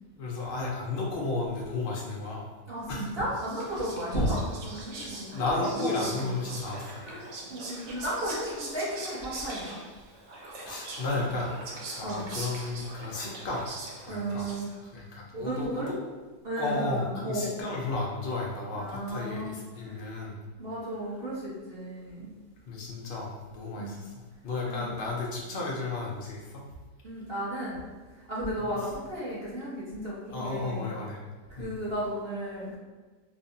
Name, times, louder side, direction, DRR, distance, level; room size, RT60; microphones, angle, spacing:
voice 1, 0.1-2.5 2.9-3.1 4.1-4.4 5.3-7.0 10.7-11.5 12.0-13.7 14.0-14.5 14.9-16.0 16.6-20.4 22.7-24.1 24.4-26.6 28.6-28.7 30.3-31.2 31.6-31.7, left 3 dB, 75° left, -3 dB, 0.5 m, -33 dB
voice 2, 2.7-6.3 7.0-9.8 12.0-12.2 14.1-14.7 15.3-15.9 16.4-17.5 18.7-20.1 20.6-22.3 23.8-23.9 24.6-24.9 27.0-27.9 28.3-30.9 31.5-32.7, right 1 dB, 40° right, -9 dB, 1.3 m, -34 dB
Whispering, 3.0-15.0, right 2 dB, 65° right, 0.7 m, -42 dB
4.0 x 2.5 x 2.7 m, 1.3 s
omnidirectional pair, 1.8 m